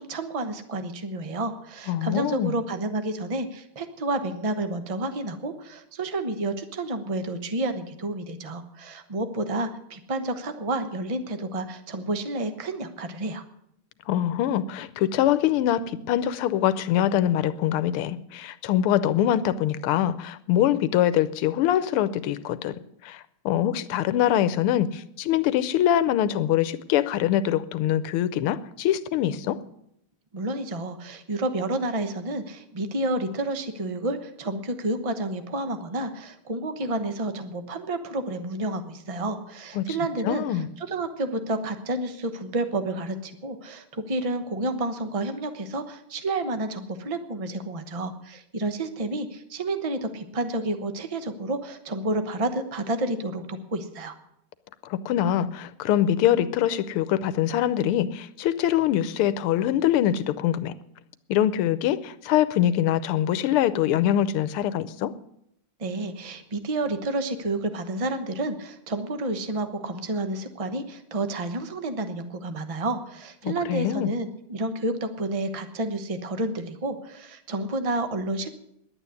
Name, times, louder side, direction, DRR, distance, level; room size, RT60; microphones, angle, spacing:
voice 1, 0.0-13.4 30.3-54.1 65.8-78.5, right 2 dB, 45° right, 9 dB, 0.4 m, -30 dB
voice 2, 1.9-2.5 14.1-22.7 23.0-29.6 39.7-39.9 40.2-40.7 54.9-60.7 61.3-65.1 73.4-74.1, left 11 dB, 85° left, 15 dB, 1.6 m, -24 dB
11.0 x 9.1 x 9.6 m, 0.77 s
omnidirectional pair, 2.4 m